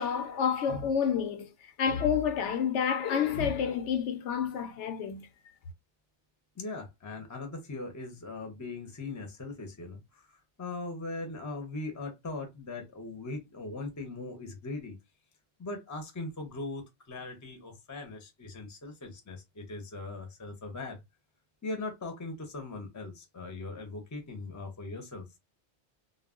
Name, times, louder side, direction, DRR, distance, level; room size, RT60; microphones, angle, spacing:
voice 1, 0.0-5.3, left 7 dB, 85° left, 0.9 m, -29 dB
voice 2, 6.5-15.0 15.6-21.0 21.6-25.3, left 3 dB, 20° left, 0.5 m, -40 dB
2.3 x 2.0 x 3.6 m
omnidirectional pair, 1.2 m